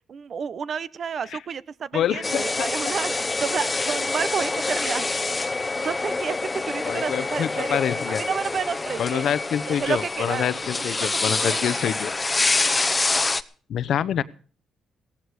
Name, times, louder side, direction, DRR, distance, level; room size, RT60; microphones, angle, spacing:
voice 1, 0.1-5.1 5.8-7.8 8.1-9.3 9.7-10.5 11.1-12.0, right 6 dB, 55° right, 18 dB, 0.9 m, -30 dB
voice 2, 1.9-2.7 6.8-8.2 9.0-12.1 13.7-14.2, left 9 dB, 70° left, 16 dB, 0.9 m, -26 dB
sound 1, 2.2-13.4, left 3 dB, 20° left, 0.9 m, -26 dB
17.0 x 14.5 x 4.9 m, 0.42 s
cardioid pair, 90°, 0 cm